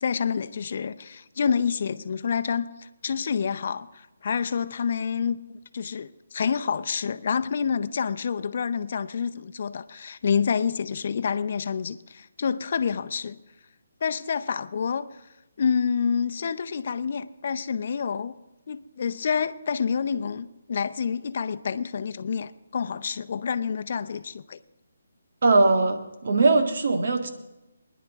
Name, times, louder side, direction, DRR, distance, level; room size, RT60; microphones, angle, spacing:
voice 1, 0.0-5.4 5.7-13.4 14.0-15.1 15.6-18.3 18.7-24.6, left 6 dB, 50° left, 0.6 m, -28 dB
voice 2, 25.4-27.3, right 3 dB, 60° right, 1.6 m, -20 dB
21.5 x 10.5 x 3.6 m
hypercardioid pair, 160°, 0 cm